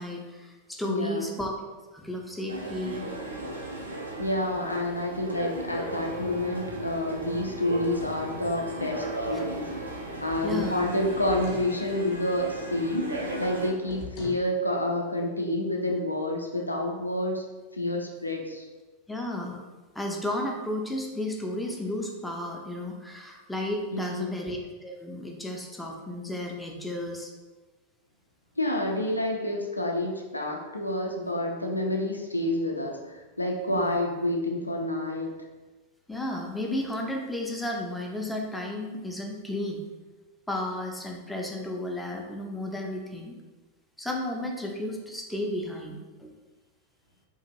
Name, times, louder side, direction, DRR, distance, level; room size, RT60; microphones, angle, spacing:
voice 1, 0.0-1.5 1.9-3.1 9.3-9.4 10.4-10.8 19.1-19.6 20.0-27.3 33.7-34.0 36.1-39.8 40.5-43.3 44.0-46.3, left 1 dB, 5° left, 0 dB, 0.4 m, -33 dB
voice 2, 0.8-1.3 4.2-9.7 10.2-17.5 17.7-18.6 23.9-24.3 28.6-35.3, left 1 dB, 85° left, 1 dB, 0.4 m, -29 dB
sound 1, 2.5-13.7, right 2 dB, 80° right, 0.4 m, -36 dB
sound 2, 10.1-11.7 13.8-14.5, left 3 dB, 40° left, 0.6 m, -41 dB
2.6 x 2.4 x 2.9 m, 1.2 s
figure-of-eight pair, 90°, 0 cm